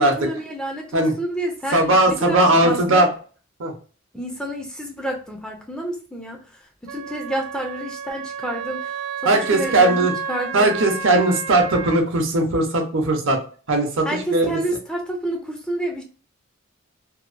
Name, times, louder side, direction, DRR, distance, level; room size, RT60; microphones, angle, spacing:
voice 1, 0.0-3.1 4.1-6.4 6.8-9.0 9.3-10.7 14.0-16.0, right 1 dB, 5° left, 1 dB, 0.4 m, -29 dB
voice 2, 1.7-3.1 3.6-3.7 9.2-10.1 10.5-13.4 13.7-14.1 14.3-14.5, right 2 dB, 65° right, 3 dB, 0.7 m, -18 dB
Wind instrument woodwind instrument, 6.9-12.0, right 6 dB, 90° right, 0.3 m, -31 dB
2.8 x 2.1 x 2.4 m, 0.40 s
head